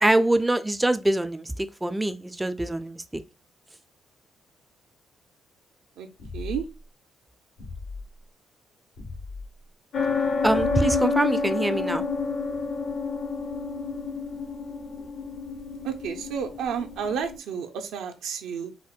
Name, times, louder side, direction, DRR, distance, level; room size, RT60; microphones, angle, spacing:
voice 1, 0.0-3.2 10.4-12.0, right 1 dB, 10° right, 0.3 m, -24 dB
sound 1, 6.2-6.8 7.6-8.0 9.0-9.5 10.4-11.1, left 3 dB, 90° left, 1.2 m, -36 dB
voice 2, 6.3-6.7 15.8-18.7, right 7 dB, 85° right, 0.4 m, -31 dB
sound 2, 9.9-17.4, left 4 dB, 55° left, 0.6 m, -29 dB
4.3 x 2.1 x 2.3 m
cardioid pair, 90°, 0 cm